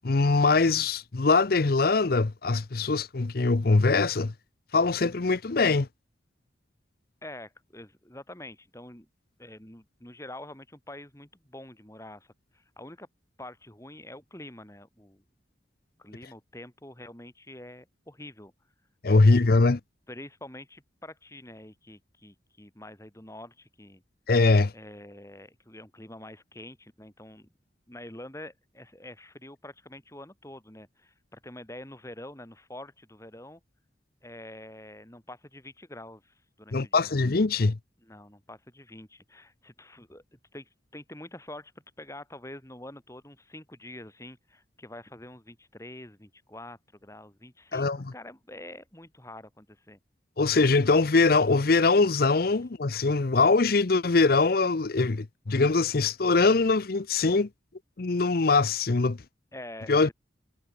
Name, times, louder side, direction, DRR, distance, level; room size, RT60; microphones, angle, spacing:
voice 1, 0.0-4.3 4.7-5.9 19.0-19.8 24.3-24.7 36.7-37.8 47.7-48.0 50.4-57.5 58.0-59.2 59.9-60.1, left 3 dB, 55° left, 0.7 m, -22 dB
voice 2, 7.2-9.1 9.4-13.1 13.4-15.2 16.0-18.5 19.2-19.6 20.1-24.0 24.7-27.5 27.9-33.6 34.2-37.1 38.0-50.0 59.5-60.1, left 1 dB, 15° left, 4.5 m, -46 dB
head